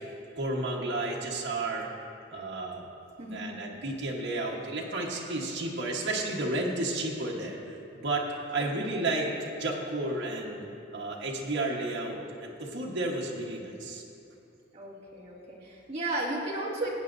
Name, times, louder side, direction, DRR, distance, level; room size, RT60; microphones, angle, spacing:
voice 1, 0.3-1.9 2.3-2.8 3.3-9.3 9.6-10.6 10.9-14.0, right 2 dB, 65° right, -3 dB, 1.3 m, -32 dB
voice 2, 3.2-3.6 8.6-8.8 14.7-16.9, right 2 dB, 30° right, -6 dB, 2.2 m, -35 dB
19.5 x 8.7 x 2.6 m, 2.7 s
head